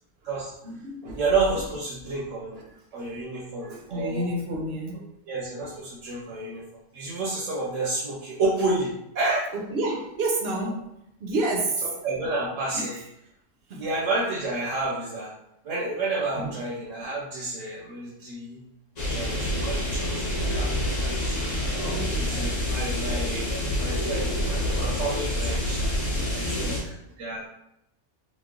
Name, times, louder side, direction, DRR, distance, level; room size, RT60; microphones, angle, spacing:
voice 1, 0.6-1.2 2.7-2.8 3.6-5.1 9.5-10.9 11.2-11.9 12.7-13.0 13.7-13.9 16.4-16.6 21.4-22.4 26.5-26.9, right 2 dB, 65° right, 1 dB, 0.7 m, -30 dB
voice 2, 1.1-2.6 2.9-4.3 5.3-6.6 6.9-9.5 11.8-12.9 13.7-15.3 15.6-18.6 19.1-21.8 22.2-23.5 23.8-25.9 26.3-27.5, right 3 dB, 90° right, -5 dB, 1.0 m, -30 dB
sound 1, 19.0-26.8, left 1 dB, 40° left, 0.7 m, -27 dB
3.0 x 2.1 x 3.6 m, 0.80 s
omnidirectional pair, 1.3 m